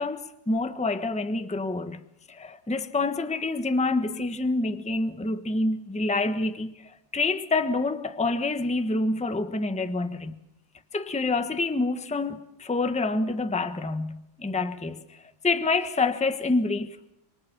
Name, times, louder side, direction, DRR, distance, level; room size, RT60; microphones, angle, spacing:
voice 1, 0.0-2.0 2.3-6.8 7.1-10.3 10.9-15.0 15.4-17.1, left 3 dB, 5° left, 0.9 m, -27 dB
27.5 x 25.5 x 7.3 m
omnidirectional pair, 2.0 m